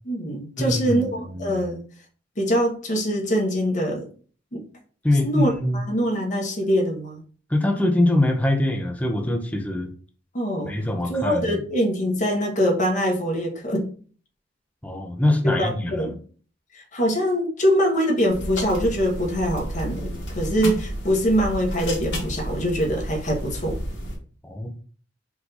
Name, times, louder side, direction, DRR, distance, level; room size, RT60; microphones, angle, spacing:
voice 1, 0.0-1.8 2.4-4.0 4.5-4.6 5.2-7.2 10.3-10.7 11.1-13.9 15.4-16.1 16.7-23.8, equal, 40° left, 0 dB, 1.3 m, -23 dB
voice 2, 0.6-1.6 5.0-5.8 7.5-9.9 10.7-11.6 14.8-16.0 24.5-24.7, left 1 dB, 10° left, 3 dB, 0.6 m, -23 dB
sound 1, 18.3-24.2, equal, 65° left, 1.6 m, -31 dB
4.6 x 2.6 x 4.1 m, 0.42 s
head